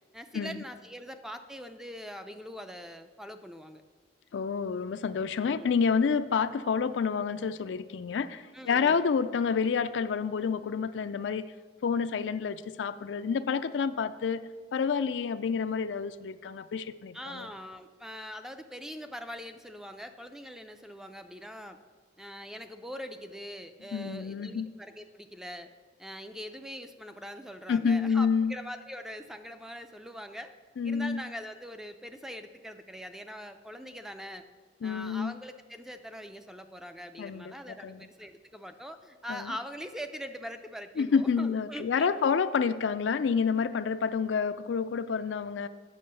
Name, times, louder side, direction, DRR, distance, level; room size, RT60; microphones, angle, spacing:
voice 1, 0.1-3.8 5.4-5.7 8.5-9.1 17.1-21.8 22.2-25.7 26.0-30.5 30.8-34.4 34.8-42.3, equal, 5° right, 8 dB, 0.4 m, -42 dB
voice 2, 4.3-11.4 11.8-17.5 23.9-24.8 27.7-28.6 30.8-31.2 34.8-35.3 37.2-38.0 39.3-39.5 41.0-45.7, left 6 dB, 80° left, 12 dB, 0.4 m, -29 dB
8.5 x 5.4 x 6.7 m, 1.5 s
head